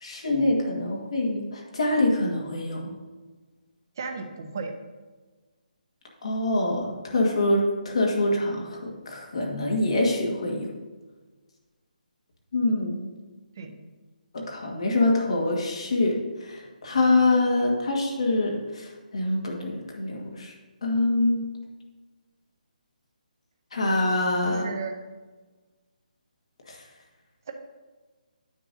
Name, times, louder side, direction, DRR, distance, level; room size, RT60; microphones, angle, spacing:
voice 1, 0.0-3.0 6.2-10.7 12.5-13.1 14.3-20.5 20.8-21.4 23.7-24.7 26.7-26.8, left 2 dB, 45° left, -1 dB, 1.7 m, -25 dB
voice 2, 4.0-4.7 13.6-13.7 17.6-17.7 24.4-25.0 27.5-27.6, right 4 dB, 25° right, 5 dB, 0.6 m, -34 dB
9.7 x 7.0 x 2.7 m, 1.3 s
hypercardioid pair, 180°, 5 cm